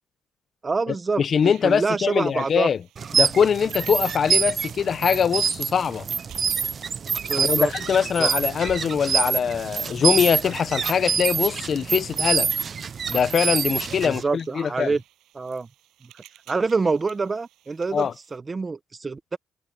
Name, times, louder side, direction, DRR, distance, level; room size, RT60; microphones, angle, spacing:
voice 1, 0.6-2.7 7.3-7.7 8.2-8.3 14.0-15.0 15.3-15.7 16.0-16.1 16.5-19.4, right 4 dB, 30° right, 0.9 m, -26 dB
voice 2, 1.2-2.8 3.1-6.0 7.4-12.5 13.1-14.9 17.9-18.1, left 7 dB, 50° left, 0.7 m, -22 dB
sound 1, 1.4-18.4, right 15 dB, 90° right, 6.7 m, -54 dB
sound 2, 3.0-14.2, right 6 dB, 45° right, 0.3 m, -26 dB
cardioid pair, 90°, 0 cm